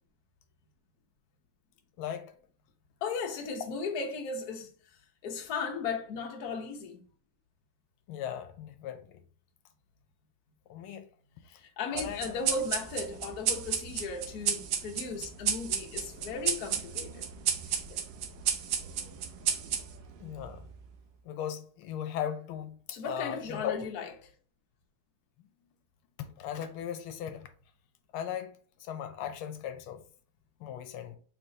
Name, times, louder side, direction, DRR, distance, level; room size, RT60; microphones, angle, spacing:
voice 1, 2.0-2.3 8.1-9.2 10.7-11.1 11.9-12.2 20.2-20.7 21.2-23.9 26.2-27.5 28.1-28.5 28.8-30.0 30.6-31.2, left 9 dB, 85° left, 1.5 m, -37 dB
voice 2, 3.0-4.7 5.2-7.0 11.5-17.3 17.7-18.0 22.9-24.1, left 4 dB, 55° left, 1.2 m, -36 dB
sound 1, 12.0-20.9, right 8 dB, 70° right, 1.2 m, -33 dB
4.6 x 3.9 x 2.7 m
omnidirectional pair, 2.3 m